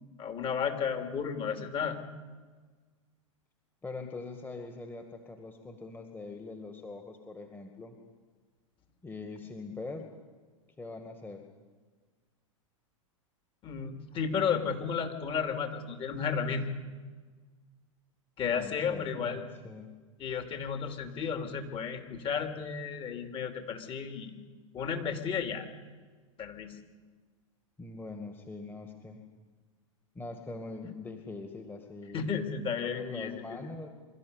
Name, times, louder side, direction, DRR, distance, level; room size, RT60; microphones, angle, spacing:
voice 1, 0.2-2.0 13.6-16.7 18.4-19.4 20.2-24.3 24.7-25.7 26.4-26.7 32.1-33.4, left 6 dB, 30° left, 5 dB, 3.0 m, -33 dB
voice 2, 3.8-8.0 9.0-10.1 10.8-11.4 18.5-20.0 27.8-29.2 30.2-32.3 32.8-33.9, left 3 dB, 10° left, 4 dB, 2.0 m, -43 dB
24.0 x 13.0 x 9.7 m, 1.4 s
hypercardioid pair, 95°, 17 cm